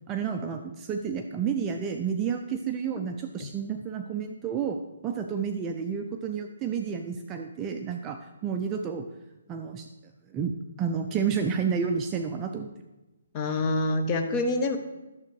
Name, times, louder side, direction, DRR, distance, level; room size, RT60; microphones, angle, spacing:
voice 1, 0.1-9.1 9.5-9.9 10.3-12.7, right 6 dB, 15° right, 4 dB, 0.4 m, -30 dB
voice 2, 13.3-14.8, left 2 dB, 20° left, 5 dB, 0.8 m, -26 dB
11.5 x 7.0 x 4.7 m, 1.1 s
hypercardioid pair, 170°, 0 cm